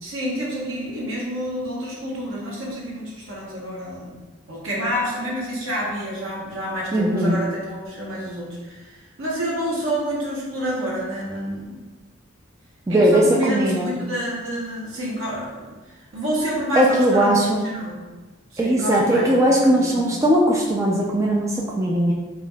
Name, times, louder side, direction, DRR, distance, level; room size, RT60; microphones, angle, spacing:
voice 1, 0.0-4.2 4.5-11.8 12.9-17.4 17.6-18.0 18.5-19.5 19.8-20.0, equal, 85° right, -5 dB, 1.1 m, -28 dB
voice 2, 6.9-7.4 12.9-13.9 16.8-17.7 18.6-22.1, right 1 dB, 15° right, -3 dB, 0.3 m, -19 dB
4.6 x 2.5 x 2.2 m, 1.3 s
head